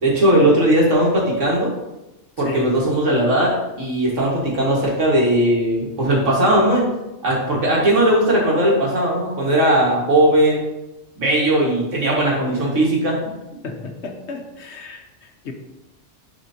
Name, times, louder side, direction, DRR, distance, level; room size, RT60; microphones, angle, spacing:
voice 1, 0.0-1.7 2.4-6.9 7.2-10.6 11.2-13.2, right 1 dB, 85° right, -4 dB, 2.3 m, -18 dB
voice 2, 2.4-2.8 13.6-15.5, left 3 dB, 65° left, 4 dB, 1.2 m, -33 dB
10.0 x 4.3 x 2.9 m, 0.97 s
omnidirectional pair, 1.2 m